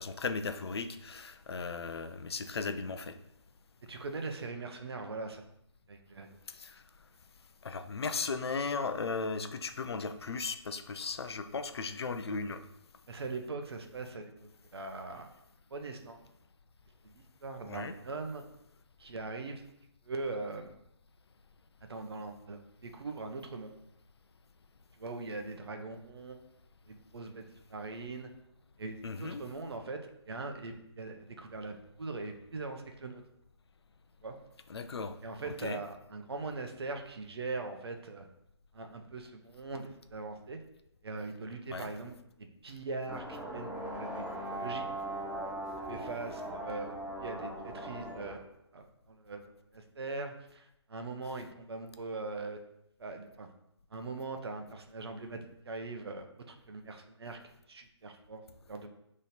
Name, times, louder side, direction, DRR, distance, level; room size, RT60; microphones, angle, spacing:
voice 1, 0.0-3.2 6.5-6.8 7.6-12.6 17.6-17.9 29.0-29.4 34.7-35.2 35.4-35.8 41.7-41.9, left 4 dB, 60° left, 0.5 m, -36 dB
voice 2, 3.8-5.4 5.9-6.3 13.1-15.3 15.7-16.2 17.0-18.4 19.0-19.6 20.0-20.7 21.9-23.7 25.0-26.4 26.9-27.4 27.7-28.3 28.8-33.2 34.2-34.3 35.2-38.2 38.7-40.6 41.0-42.1 42.6-45.0 45.9-48.4 48.7-49.4 49.7-52.6 53.0-53.5 53.9-55.4 55.6-57.4 57.7-58.4 58.7-58.9, right 3 dB, 60° right, 0.7 m, -41 dB
sound 1, 43.1-48.3, right 1 dB, 5° right, 0.6 m, -39 dB
3.8 x 3.1 x 4.2 m
figure-of-eight pair, 145°, 15 cm